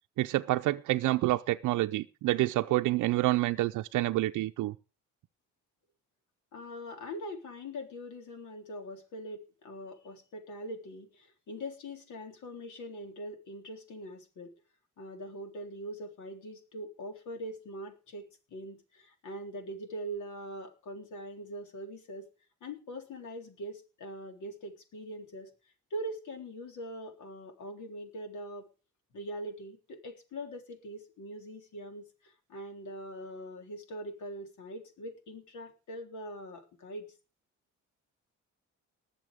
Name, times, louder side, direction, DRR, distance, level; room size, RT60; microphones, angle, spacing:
voice 1, 0.2-4.7, right 17 dB, 85° right, 0.6 m, -28 dB
voice 2, 6.5-14.5 15.0-22.3 22.6-25.5 25.9-28.7 29.1-37.1, equal, 75° left, 3.7 m, -42 dB
20.0 x 7.1 x 5.1 m
cardioid pair, 90°, 30 cm